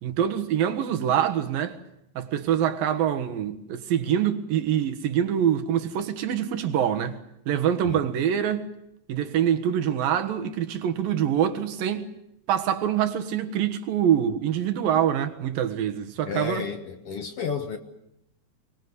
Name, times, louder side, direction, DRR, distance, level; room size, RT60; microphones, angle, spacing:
voice 1, 0.0-1.8 2.1-7.2 7.5-8.7 9.1-12.1 12.5-16.7, right 9 dB, 90° right, 3.3 m, -25 dB
voice 2, 16.3-17.8, left 6 dB, 55° left, 1.9 m, -32 dB
24.5 x 21.5 x 8.1 m
omnidirectional pair, 3.9 m